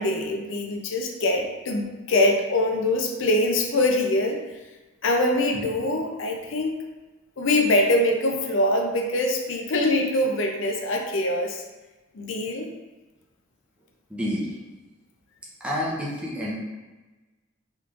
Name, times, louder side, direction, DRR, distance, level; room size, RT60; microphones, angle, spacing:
voice 1, 0.0-4.4 5.0-6.7 7.4-11.6 12.1-12.7, left 1 dB, 65° left, 2 dB, 0.5 m, -23 dB
voice 2, 14.1-14.6 15.6-16.6, equal, 5° right, -6 dB, 0.6 m, -29 dB
3.5 x 3.1 x 2.4 m, 1.2 s
head